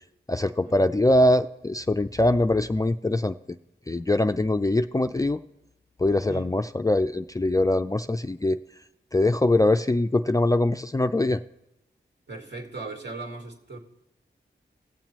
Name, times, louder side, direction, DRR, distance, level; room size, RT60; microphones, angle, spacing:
voice 1, 0.3-3.3 3.9-5.4 6.0-8.6 9.1-11.4, left 1 dB, 15° left, 0.3 m, -22 dB
voice 2, 12.3-13.8, right 2 dB, 65° right, 1.9 m, -38 dB
18.0 x 7.3 x 3.0 m
cardioid pair, 50°, 20 cm